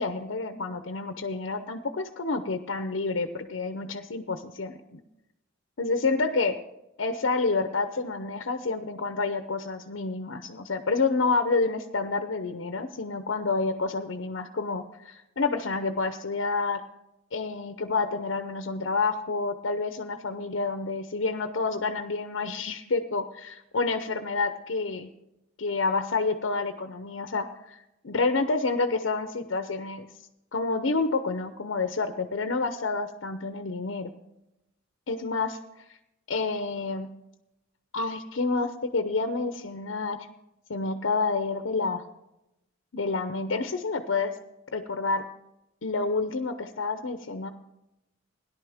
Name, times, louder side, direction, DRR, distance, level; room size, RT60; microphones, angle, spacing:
voice 1, 0.0-5.0 5.8-6.6 7.0-16.8 17.3-25.1 25.6-27.8 28.0-30.1 30.5-34.1 35.1-35.6 36.3-37.1 37.9-40.3 40.7-42.0 42.9-44.3 44.7-45.2 45.8-47.5, left 3 dB, 75° left, 8 dB, 0.7 m, -29 dB
17.5 x 11.0 x 3.5 m, 0.89 s
head